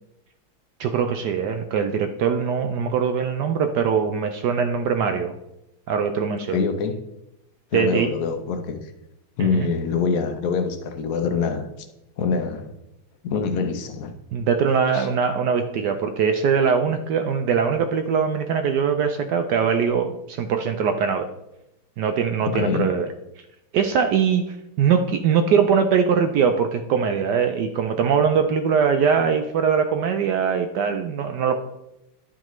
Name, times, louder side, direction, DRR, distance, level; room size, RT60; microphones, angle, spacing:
voice 1, 0.8-5.3 5.9-6.6 7.7-8.1 9.4-9.7 14.3-21.3 22.0-23.1 23.7-31.6, right 6 dB, 75° right, 1.0 m, -22 dB
voice 2, 6.5-7.1 7.7-8.9 9.4-11.7 12.2-12.7 13.2-14.1 14.9-15.1 22.4-23.0, left 5 dB, 70° left, 0.8 m, -25 dB
11.0 x 4.8 x 3.0 m
omnidirectional pair, 2.2 m